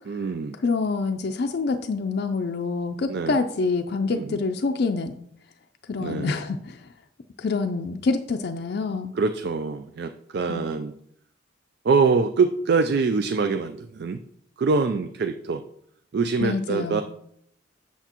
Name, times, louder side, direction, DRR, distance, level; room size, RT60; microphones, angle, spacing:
voice 1, 0.1-0.6 3.1-3.4 4.1-4.4 6.0-6.3 9.1-10.9 11.8-14.2 14.6-15.6 16.1-17.0, right 4 dB, 55° right, 8 dB, 0.4 m, -24 dB
voice 2, 0.6-5.2 5.9-6.8 7.4-9.1 10.5-10.7 16.4-17.0, left 4 dB, 55° left, 5 dB, 0.4 m, -26 dB
8.0 x 7.0 x 2.9 m, 0.70 s
head